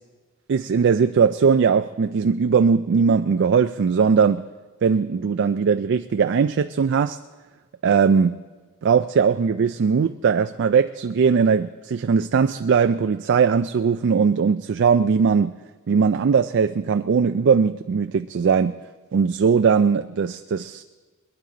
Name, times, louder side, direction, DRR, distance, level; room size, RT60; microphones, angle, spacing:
voice 1, 0.5-4.4 4.8-7.2 7.8-8.4 8.8-15.6 15.9-18.7 19.1-20.8, right 6 dB, 55° right, 9 dB, 0.4 m, -19 dB
21.0 x 12.0 x 3.9 m, 1.3 s
head